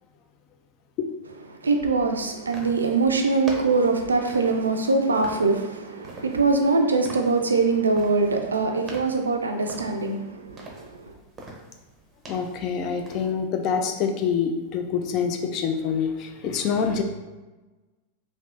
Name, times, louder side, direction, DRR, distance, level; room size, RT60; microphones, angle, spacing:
voice 1, 1.6-11.1, right 3 dB, 75° right, 0.3 m, -23 dB
sound 1, 2.5-13.3, right 2 dB, 20° right, 0.6 m, -44 dB
voice 2, 12.3-17.0, left 6 dB, 40° left, 0.3 m, -26 dB
3.4 x 2.6 x 2.4 m
figure-of-eight pair, 90°, 0 cm